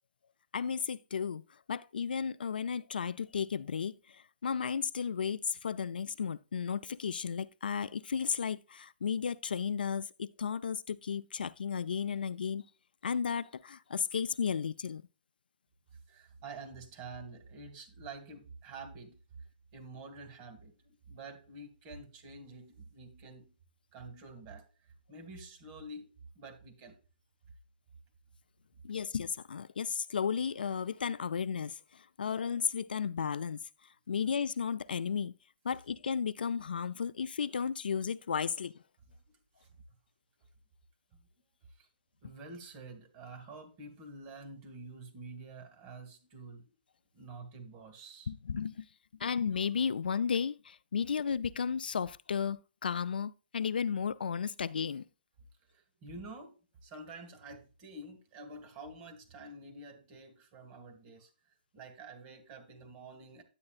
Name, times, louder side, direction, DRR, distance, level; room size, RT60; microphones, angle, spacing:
voice 1, 0.5-1.4 1.7-3.9 4.4-12.6 13.0-15.0 28.8-31.7 32.2-33.6 34.1-35.3 35.6-38.7 48.3-48.8 49.2-55.0, left 6 dB, 80° left, 0.4 m, -34 dB
voice 2, 16.1-19.2 19.7-23.5 23.9-24.7 25.1-27.0 39.3-39.7 41.8-41.9 42.2-46.7 47.1-48.3 55.7-56.6 56.8-61.3 61.7-63.4, right 3 dB, 35° right, 1.9 m, -48 dB
9.7 x 8.5 x 2.4 m
hypercardioid pair, 140°, 5 cm